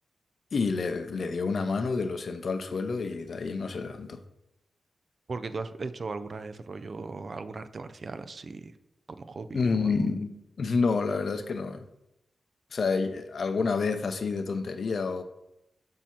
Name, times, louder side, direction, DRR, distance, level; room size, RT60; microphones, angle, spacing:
voice 1, 0.5-4.2 9.5-11.9 12.7-15.2, left 4 dB, 65° left, 0.6 m, -29 dB
voice 2, 5.3-8.7 9.1-10.1, right 4 dB, 55° right, 0.4 m, -38 dB
7.2 x 2.8 x 5.8 m
cardioid pair, 70°, 0 cm